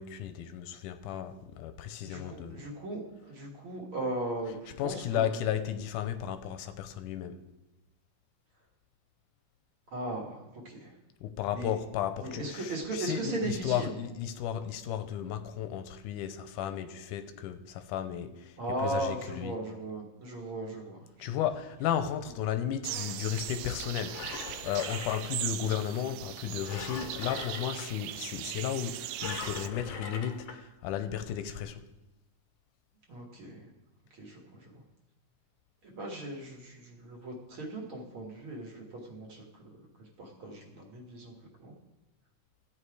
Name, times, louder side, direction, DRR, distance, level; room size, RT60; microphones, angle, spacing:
voice 1, 0.0-2.7 4.8-7.4 11.2-19.6 21.2-31.8, left 10 dB, 85° left, 2.2 m, -34 dB
voice 2, 2.0-5.3 9.9-10.9 11.5-11.8 12.2-13.9 18.6-21.3 33.1-33.7 34.1-34.8 35.8-39.7 40.2-41.3 41.6-41.7, right 2 dB, 45° right, 2.1 m, -38 dB
sound 1, 22.8-29.7, right 13 dB, 85° right, 2.1 m, -39 dB
Engine, 23.8-25.8 26.6-27.9 29.2-30.6 31.2-31.3, left 6 dB, 65° left, 1.7 m, -41 dB
14.5 x 9.0 x 4.8 m
omnidirectional pair, 3.7 m